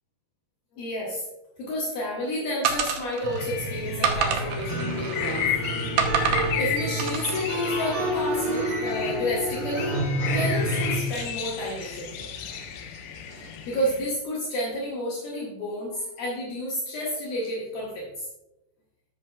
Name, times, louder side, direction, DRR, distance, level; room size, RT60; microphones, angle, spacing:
voice 1, 0.7-1.2 1.6-5.4 6.6-9.9 10.3-12.3 13.7-18.3, left 1 dB, 65° left, -5 dB, 3.0 m, -30 dB
sound 1, 2.6-3.4 4.0-5.5 6.0-6.5 7.0-7.4, right 6 dB, 75° right, 2.0 m, -27 dB
sound 2, 3.2-13.5, right 1 dB, 55° right, 3.1 m, -29 dB
sound 3, 3.4-14.1, left 9 dB, 85° left, 2.8 m, -34 dB
14.0 x 6.4 x 2.4 m, 0.92 s
omnidirectional pair, 4.9 m